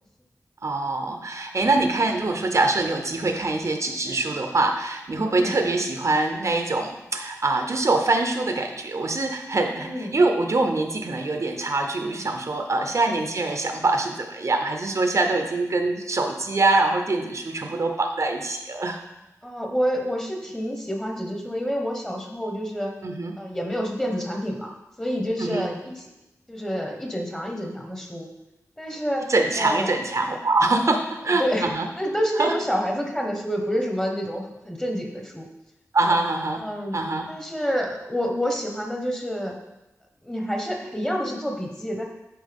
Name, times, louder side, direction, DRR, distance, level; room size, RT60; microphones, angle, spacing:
voice 1, 0.6-19.0 23.0-23.3 25.4-25.7 29.3-31.9 32.4-32.5 35.9-36.6 36.9-37.3, right 2 dB, 60° right, 4 dB, 0.7 m, -24 dB
voice 2, 5.2-5.6 9.7-10.1 12.8-13.1 19.4-22.9 23.4-24.7 25.0-26.1 26.5-28.3 28.8-30.0 31.3-31.7 32.0-35.5 36.5-39.5 40.2-42.0, equal, 10° left, 1 dB, 1.2 m, -28 dB
10.5 x 4.5 x 3.6 m, 0.95 s
wide cardioid pair, 95°, 6 cm